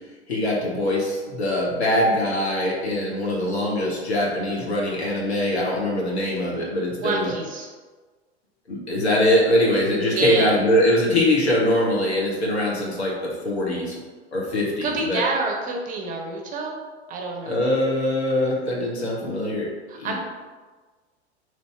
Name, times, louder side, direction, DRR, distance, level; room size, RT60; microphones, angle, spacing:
voice 1, 0.3-7.3 8.7-14.0 14.3-15.2 17.5-19.7 20.0-20.2, left 1 dB, 75° left, -4 dB, 1.2 m, -22 dB
voice 2, 7.0-7.7 10.1-10.6 14.5-16.8 17.1-17.7 19.9-20.2, right 3 dB, 25° right, 1 dB, 0.6 m, -28 dB
3.1 x 2.7 x 4.4 m, 1.4 s
figure-of-eight pair, 90°, 33 cm